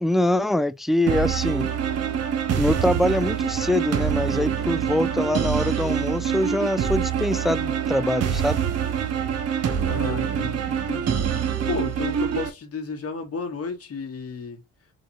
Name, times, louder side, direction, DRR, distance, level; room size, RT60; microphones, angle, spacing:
voice 1, 0.0-1.7 2.6-8.6, left 1 dB, ahead, 0.3 m, -24 dB
sound 1, 1.1-12.5, right 8 dB, 55° right, 1.1 m, -25 dB
voice 2, 9.9-14.6, left 4 dB, 50° left, 1.9 m, -33 dB
4.2 x 3.8 x 2.9 m
cardioid pair, 90°, 30 cm